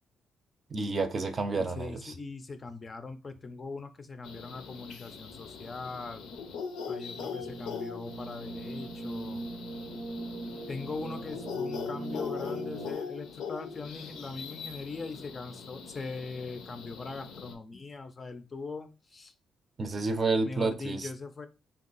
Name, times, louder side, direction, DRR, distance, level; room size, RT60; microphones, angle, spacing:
voice 1, 0.7-2.1 19.8-21.1, right 3 dB, 35° right, 0.5 m, -30 dB
voice 2, 1.5-6.3 6.9-9.4 10.7-19.3 20.4-21.5, left 4 dB, 35° left, 0.4 m, -41 dB
sound 1, 4.2-17.5, left 6 dB, 85° left, 0.5 m, -41 dB
sound 2, 6.9-12.9, right 2 dB, 85° right, 0.7 m, -41 dB
2.6 x 2.3 x 3.8 m
cardioid pair, 90°, 0 cm